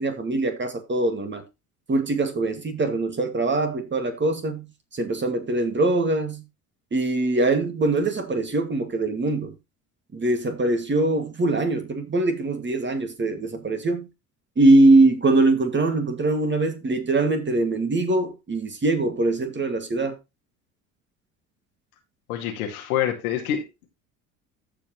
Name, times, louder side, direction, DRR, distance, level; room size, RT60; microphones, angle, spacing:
voice 1, 0.0-1.4 1.9-4.6 4.9-6.4 6.9-9.5 10.1-14.1 14.6-20.1, right 2 dB, 25° right, 2.3 m, -22 dB
voice 2, 22.3-23.9, left 10 dB, 75° left, 2.3 m, -27 dB
15.0 x 5.0 x 3.1 m
hypercardioid pair, 65°, 44 cm